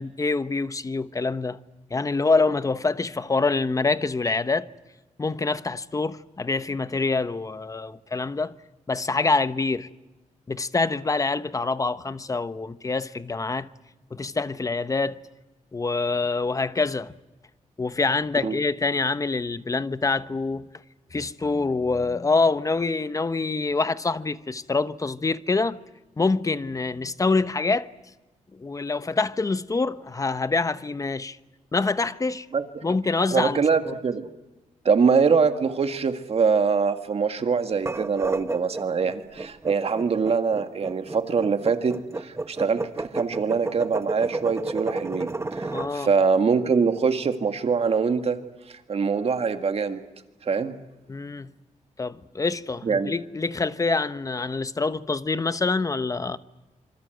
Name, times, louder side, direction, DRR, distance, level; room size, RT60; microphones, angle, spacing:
voice 1, 0.0-1.6 1.9-4.7 5.2-8.5 8.9-9.9 10.5-13.7 14.1-15.2 15.7-17.1 17.8-20.7 21.1-25.8 26.2-27.9 28.6-31.4 31.7-32.5 32.8-33.9 45.7-46.1 51.1-51.5 52.0-56.4, left 3 dB, 25° left, 1.0 m, -25 dB
voice 2, 32.5-32.8 33.3-34.3 34.9-48.4 48.7-50.0 50.4-50.7 52.8-53.1, right 5 dB, 50° right, 1.9 m, -24 dB
sound 1, 37.7-45.9, right 2 dB, 20° right, 1.1 m, -32 dB
26.5 x 25.5 x 7.9 m
cardioid pair, 105°, 13 cm